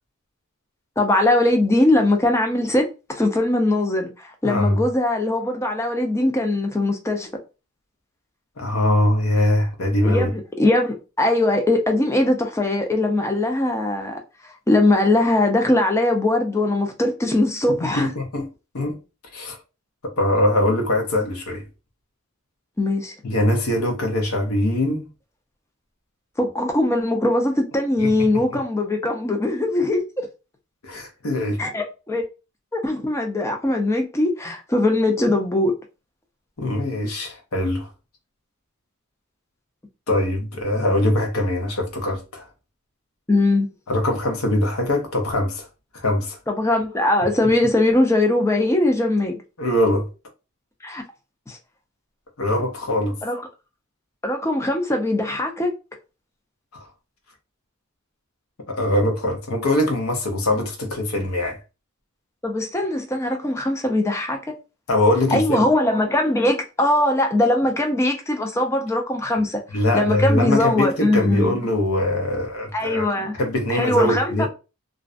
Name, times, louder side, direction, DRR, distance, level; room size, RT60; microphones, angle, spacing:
voice 1, 1.0-2.9 3.1-7.3 10.0-18.1 22.8-23.1 26.4-30.3 31.6-32.2 32.7-35.7 43.3-43.7 46.5-49.3 50.8-51.0 51.5-51.6 53.2-53.4 54.2-55.7 62.4-64.5 65.3-69.6 69.9-71.6 72.7-73.3 73.7-74.5, left 1 dB, 10° left, 0.4 m, -21 dB
voice 2, 4.4-4.8 8.6-10.3 17.7-18.5 18.7-19.0 19.3-19.6 20.0-21.6 23.2-25.1 28.0-28.1 28.3-28.4 30.8-31.6 36.6-37.9 40.1-42.5 43.9-45.7 45.9-46.4 49.6-50.1 52.4-53.2 56.7-56.9 58.7-61.6 64.9-65.7 69.7-73.1 73.3-74.5, left 1 dB, 70° left, 0.7 m, -22 dB
2.4 x 2.1 x 2.4 m
head